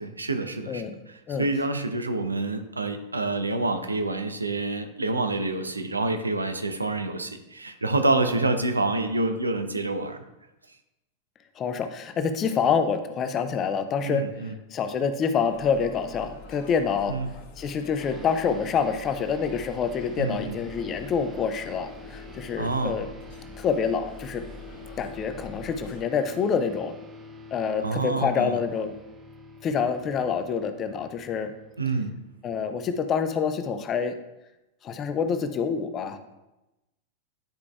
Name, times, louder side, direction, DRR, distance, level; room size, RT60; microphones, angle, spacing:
voice 1, 0.0-10.2 14.0-14.5 17.1-17.3 20.2-20.6 22.6-22.9 27.8-28.6 31.8-32.2, right 2 dB, 80° right, 7 dB, 0.7 m, -27 dB
voice 2, 0.7-1.0 1.3-1.5 8.3-8.4 11.6-14.3 14.7-17.2 17.6-23.1 23.6-24.4 25.0-26.9 27.5-29.0 29.6-31.5 32.4-34.1 34.8-36.2, left 6 dB, 30° left, 8 dB, 0.6 m, -27 dB
sound 1, 15.4-26.0, left 3 dB, 45° left, 1.2 m, -45 dB
sound 2, 18.0-32.8, left 2 dB, 20° right, 0.7 m, -47 dB
10.0 x 4.7 x 2.3 m, 0.97 s
figure-of-eight pair, 90°, 0 cm